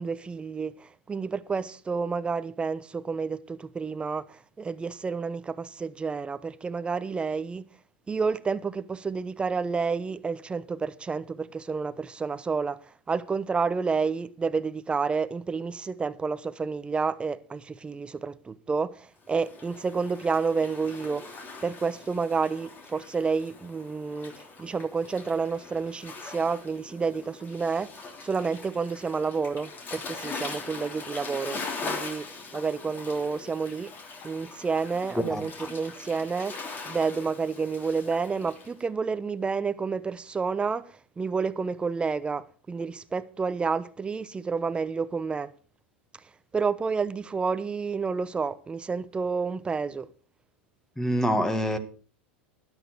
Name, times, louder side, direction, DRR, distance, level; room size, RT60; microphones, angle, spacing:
voice 1, 0.0-7.6 8.1-12.8 13.1-21.3 21.6-32.3 32.5-33.9 34.2-36.6 36.9-45.5 46.5-50.1, right 5 dB, 15° right, 0.9 m, -30 dB
Waves surf, 19.3-38.7, left 4 dB, 35° left, 3.1 m, -41 dB
voice 2, 51.0-51.8, equal, 5° left, 1.8 m, -25 dB
13.0 x 11.0 x 4.6 m
hypercardioid pair, 95°, 6 cm